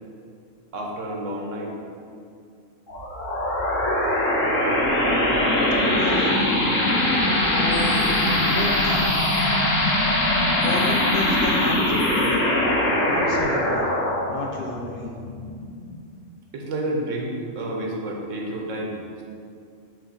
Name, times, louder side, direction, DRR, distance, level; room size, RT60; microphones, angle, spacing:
voice 1, 0.7-1.7 16.5-19.0, right 1 dB, 80° right, 0 dB, 1.2 m, -29 dB
sound 1, 2.9-16.0, left 1 dB, 80° left, 1.4 m, -22 dB
voice 2, 4.4-5.0 6.0-6.4 7.5-8.0 8.5-9.1 10.5-12.4 13.0-13.9 14.3-15.1, left 2 dB, 55° left, -1 dB, 0.8 m, -32 dB
4.8 x 4.0 x 5.5 m, 2.4 s
omnidirectional pair, 1.3 m